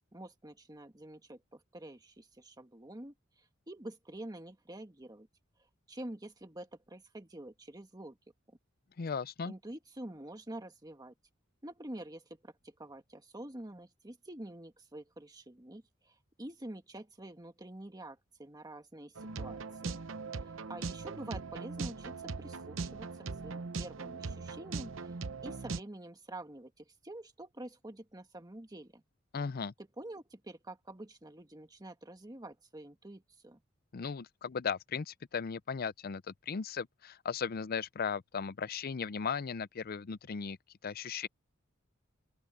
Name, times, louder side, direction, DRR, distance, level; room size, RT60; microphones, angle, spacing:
voice 1, 0.1-5.3 5.9-8.2 9.5-11.1 11.6-20.0 20.4-23.1 23.4-25.1 25.4-29.0 29.8-33.6, right 1 dB, 20° right, 1.5 m, -47 dB
voice 2, 9.0-9.5 29.3-29.7 33.9-40.6 40.8-41.3, left 6 dB, 50° left, 0.5 m, -37 dB
sound 1, 19.2-25.8, right 4 dB, 75° right, 0.8 m, -40 dB
open air
head